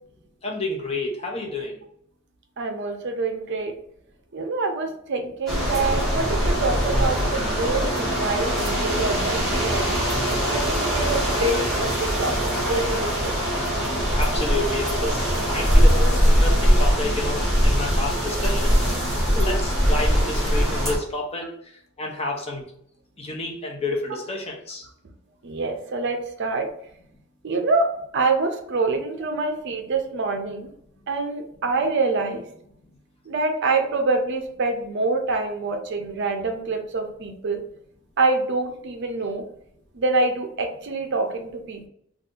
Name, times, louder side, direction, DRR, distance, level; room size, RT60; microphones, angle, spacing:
voice 1, 0.4-1.7 14.2-18.9 19.3-21.5 22.0-22.6 23.2-24.9, left 2 dB, 30° left, 0 dB, 0.6 m, -30 dB
voice 2, 2.6-3.7 4.3-9.9 10.5-12.3 12.6-13.3 25.4-26.7 27.4-27.9 28.1-30.7 31.1-32.4 33.3-37.6 38.2-39.4 39.9-41.9, right 3 dB, 55° right, 4 dB, 0.5 m, -26 dB
sound 1, 5.5-21.0, equal, ahead, 1.1 m, -21 dB
2.6 x 2.3 x 3.6 m, 0.68 s
head